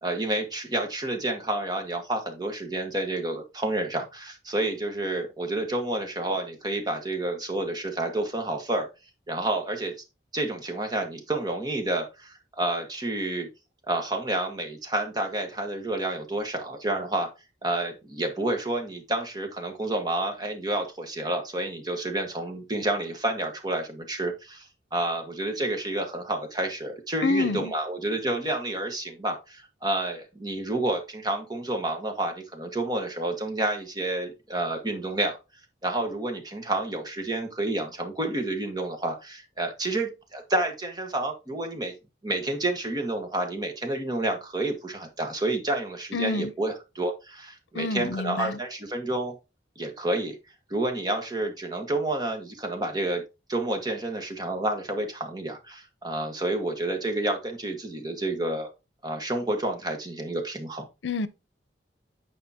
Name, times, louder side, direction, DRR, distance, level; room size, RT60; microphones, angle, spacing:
voice 1, 0.0-8.9 9.3-9.9 10.3-13.5 13.9-17.3 17.6-35.4 35.8-41.9 42.2-49.3 49.8-50.4 50.7-53.2 53.5-58.7 59.0-60.8, right 2 dB, 20° right, 1.4 m, -29 dB
voice 2, 27.2-27.7 46.1-46.5 47.7-48.6 61.0-61.3, left 3 dB, 85° left, 0.7 m, -27 dB
9.5 x 5.0 x 2.8 m
head